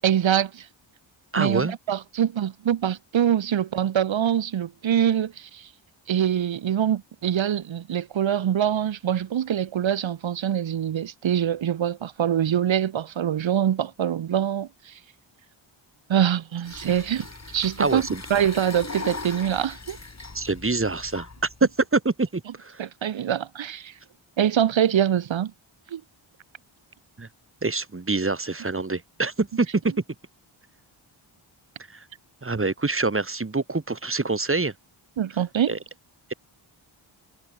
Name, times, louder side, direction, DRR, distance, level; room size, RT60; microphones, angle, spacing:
voice 1, 0.0-0.7 1.4-5.7 6.1-14.9 16.1-18.0 18.3-20.0 22.8-23.9 24.4-25.5 25.9-26.0 35.2-35.8, right 9 dB, 70° right, 1.0 m, -24 dB
voice 2, 1.3-1.7 17.8-18.2 20.3-21.3 21.9-22.9 27.2-27.3 27.6-29.9 31.9-32.0 32.4-34.7 35.7-35.8, right 3 dB, 25° right, 2.1 m, -26 dB
sound 1, 16.6-21.7, left 3 dB, 35° left, 6.0 m, -39 dB
wide cardioid pair, 80°, 48 cm